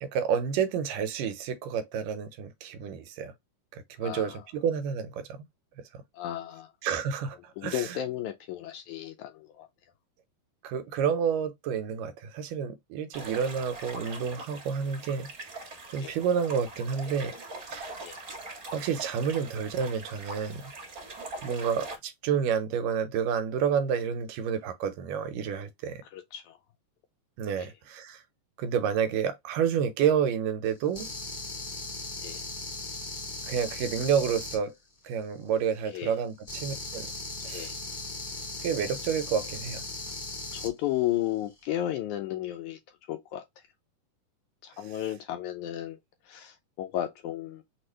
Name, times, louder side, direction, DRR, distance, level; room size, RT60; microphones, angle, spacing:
voice 1, 0.0-3.3 3.7-5.4 5.9-6.0 6.8-7.4 7.6-8.0 10.6-17.3 17.7-17.9 18.7-20.7 21.4-26.0 27.4-28.2 28.6-31.1 33.5-34.8 35.0-37.1 37.4-37.7 38.6-39.8, right 7 dB, 90° right, 2.4 m, -29 dB
voice 2, 4.0-4.4 6.1-6.7 7.6-9.7 16.0-16.1 18.0-18.2 26.1-26.6 27.6-27.7 32.2-32.4 35.9-36.1 37.5-37.7 40.5-42.8 43.1-43.4 44.6-46.0 46.3-47.6, left 13 dB, 80° left, 1.8 m, -33 dB
sound 1, 13.1-22.0, right 2 dB, 35° right, 1.4 m, -42 dB
sound 2, 30.9-34.6 36.4-40.7, left 2 dB, 60° left, 0.4 m, -38 dB
6.0 x 2.4 x 3.1 m
omnidirectional pair, 3.8 m